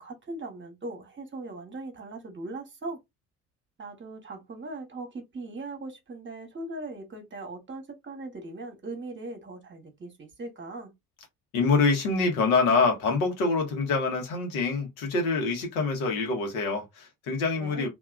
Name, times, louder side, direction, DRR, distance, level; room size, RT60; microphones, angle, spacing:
voice 1, 0.0-3.0 3.8-10.9 17.6-17.9, right 2 dB, 25° right, 1.3 m, -39 dB
voice 2, 11.5-17.9, left 4 dB, 65° left, 1.5 m, -25 dB
3.4 x 2.9 x 2.4 m
figure-of-eight pair, 55°, 45 cm